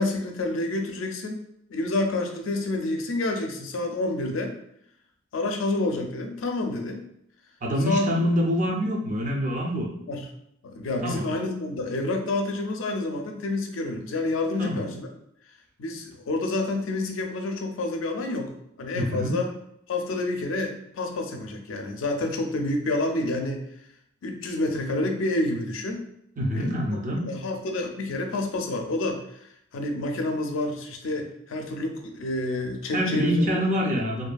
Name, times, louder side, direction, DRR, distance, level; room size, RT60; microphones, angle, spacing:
voice 1, 0.0-1.4 1.7-4.6 5.3-7.0 7.8-8.1 10.1-10.3 10.6-15.1 15.8-19.5 19.9-23.6 24.2-26.1 26.5-26.8 27.2-29.4 29.7-33.5, left 2 dB, 85° left, 3 dB, 0.5 m, -28 dB
voice 2, 7.6-9.9 11.0-11.4 14.6-14.8 18.9-19.4 26.4-27.2 32.9-34.3, equal, 40° right, 0 dB, 0.5 m, -26 dB
2.6 x 2.5 x 2.3 m, 0.74 s
head